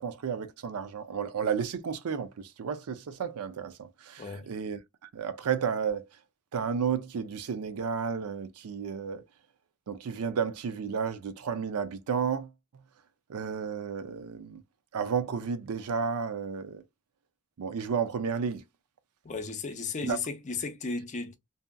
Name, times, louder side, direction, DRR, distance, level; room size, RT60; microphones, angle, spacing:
voice 1, 0.0-4.8 5.1-6.0 6.5-9.2 9.9-12.5 13.3-14.6 14.9-16.8 17.6-18.6 20.0-20.2, right 6 dB, 75° right, 0.4 m, -32 dB
voice 2, 4.2-4.5 19.2-21.3, left 4 dB, 35° left, 0.5 m, -35 dB
2.7 x 2.4 x 2.2 m
head